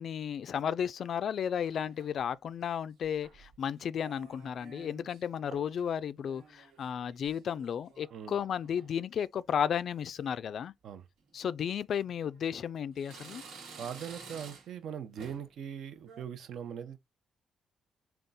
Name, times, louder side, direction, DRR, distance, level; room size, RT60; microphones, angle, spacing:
voice 1, 0.0-10.7 11.3-13.4, left 8 dB, 60° left, 0.3 m, -33 dB
sound 1, 1.6-2.3 3.0-3.6 4.0-5.2 5.5-5.9 6.2-8.1 8.5-8.9 9.5-9.8 10.2-10.3 11.2-11.3 12.0-12.6 13.0-14.8 15.2-15.5 15.9-16.2, right 5 dB, 85° right, 1.4 m, -52 dB
voice 2, 13.8-17.0, right 8 dB, 70° right, 0.7 m, -41 dB
3.7 x 2.3 x 3.9 m
cardioid pair, 90°, 0 cm